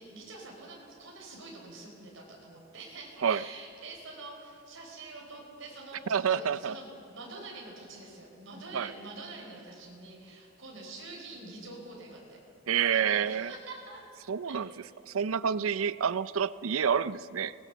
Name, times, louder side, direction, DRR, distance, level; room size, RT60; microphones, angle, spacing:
voice 1, 0.0-12.4 12.7-14.0 14.5-15.0, right 3 dB, 70° right, -2 dB, 4.7 m, -46 dB
voice 2, 6.1-6.7 8.7-8.9 12.7-13.5 14.3-14.7 15.1-17.5, right 7 dB, 85° right, 17 dB, 0.5 m, -28 dB
24.0 x 19.0 x 7.0 m, 2.8 s
head